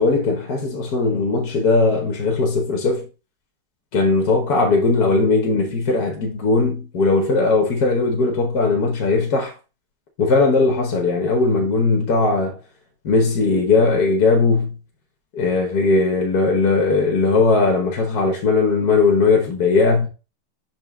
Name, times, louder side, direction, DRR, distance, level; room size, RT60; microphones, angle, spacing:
voice 1, 0.0-3.0 3.9-9.5 10.2-12.6 13.1-14.7 15.3-20.1, left 3 dB, 65° left, 1.7 m, -18 dB
5.8 x 4.7 x 3.6 m
omnidirectional pair, 1.8 m